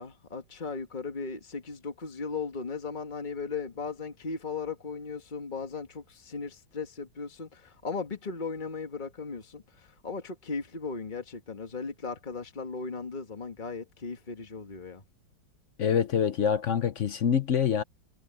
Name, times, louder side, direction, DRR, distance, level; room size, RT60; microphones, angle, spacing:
voice 1, 0.0-15.0, left 4 dB, 25° left, 1.9 m, -37 dB
voice 2, 15.8-17.8, left 8 dB, 60° left, 0.8 m, -25 dB
omnidirectional pair, 2.0 m